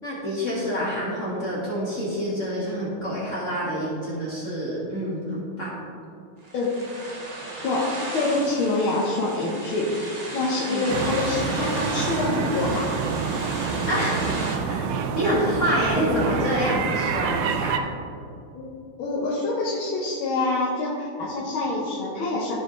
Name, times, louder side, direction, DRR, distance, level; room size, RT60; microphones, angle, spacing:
voice 1, 0.0-5.8 10.7-10.9 13.9-14.3 14.7-14.9 15.2-17.8, equal, 40° left, -7 dB, 1.8 m, -27 dB
sound 1, 6.4-14.6, right 2 dB, 35° right, 0.6 m, -35 dB
voice 2, 7.5-7.9 8.1-10.1 10.3-12.9 18.5-18.7 19.0-22.5, left 2 dB, 75° left, -5 dB, 1.8 m, -26 dB
sound 2, 10.9-17.8, right 6 dB, 75° right, 1.2 m, -27 dB
14.0 x 4.8 x 3.1 m, 2.5 s
omnidirectional pair, 2.3 m